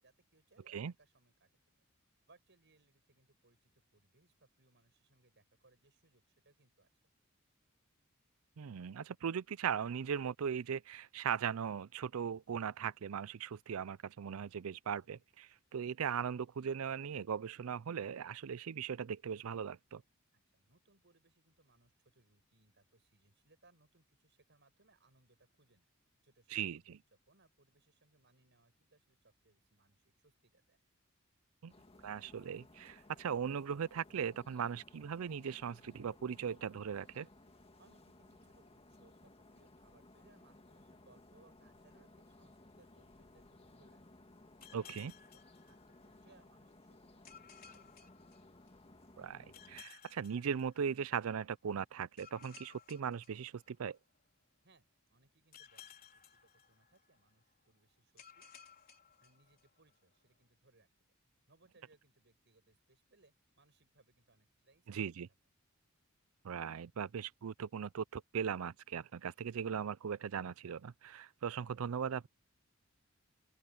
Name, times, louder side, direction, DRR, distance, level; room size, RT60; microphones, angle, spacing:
voice 1, 0.0-1.6 2.3-6.9 20.3-25.9 26.2-27.0 27.3-30.8 37.8-44.0 44.6-48.4 54.6-58.5 59.2-60.9 61.5-64.9, right 3 dB, 60° right, 7.3 m, -70 dB
voice 2, 8.6-20.0 26.5-27.0 31.6-31.7 32.0-37.3 44.7-45.1 49.2-54.0 64.9-65.3 66.4-72.3, right 7 dB, 85° right, 0.4 m, -39 dB
sound 1, 31.7-49.8, left 2 dB, 30° left, 1.8 m, -61 dB
sound 2, 44.6-46.4 47.3-49.0 49.5-51.3 52.2-54.2 55.5-57.3 58.2-60.0, left 8 dB, 45° left, 5.0 m, -59 dB
open air
head